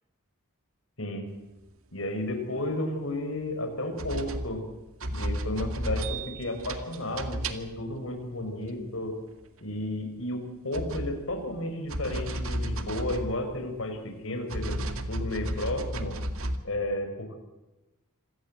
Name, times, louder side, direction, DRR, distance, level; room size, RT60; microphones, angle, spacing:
voice 1, 1.9-4.6 5.1-9.1 9.6-14.8 15.1-16.1 16.6-17.4, left 1 dB, 60° left, 5 dB, 5.5 m, -33 dB
sound 1, 3.5-3.6 4.0-7.9 8.6-8.7 10.5-11.6 11.9-14.0 14.5-16.6, right 1 dB, 65° right, 2.1 m, -33 dB
26.5 x 18.0 x 7.7 m, 0.98 s
head